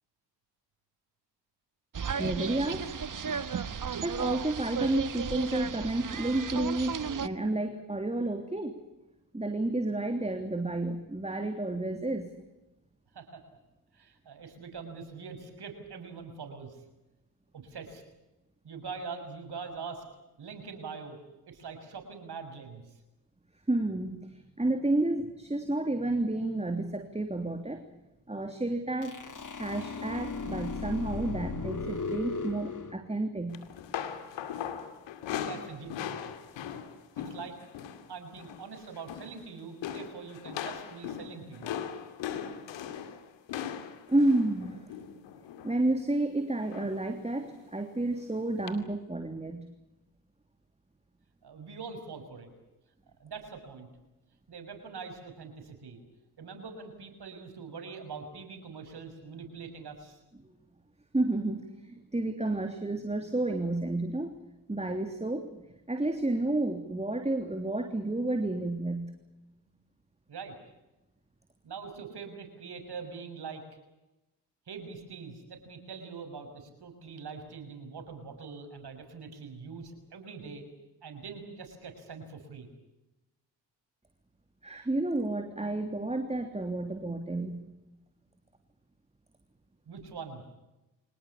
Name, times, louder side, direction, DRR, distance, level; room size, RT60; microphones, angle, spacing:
sound 1, 1.9-7.3, right 6 dB, 45° right, 1.5 m, -34 dB
voice 1, 2.2-3.0 4.0-8.8 9.3-12.3 23.7-27.9 28.3-29.2 29.6-33.6 44.1-44.8 45.6-49.7 60.4-60.5 61.1-64.3 64.7-69.2 84.6-87.7, right 2 dB, 15° right, 6 dB, 3.1 m, -31 dB
voice 2, 13.9-16.8 17.5-18.0 18.6-20.0 20.4-21.2 21.4-22.8 35.3-36.3 37.2-37.6 38.1-41.7 51.4-52.5 53.2-53.9 54.5-56.0 56.4-60.2 70.3-70.5 71.6-73.6 74.7-80.6 81.0-82.7 89.9-90.4, right 5 dB, 60° right, 6 dB, 6.5 m, -43 dB
sound 2, 29.0-32.9, left 4 dB, 45° left, 3.3 m, -36 dB
sound 3, 33.5-38.1 38.3-38.7 38.9-39.4 39.8-45.8 46.7-47.1 47.4-47.6 48.7-48.8, left 9 dB, 85° left, 2.4 m, -39 dB
25.0 x 19.5 x 8.5 m, 0.99 s
supercardioid pair, 45°, 44 cm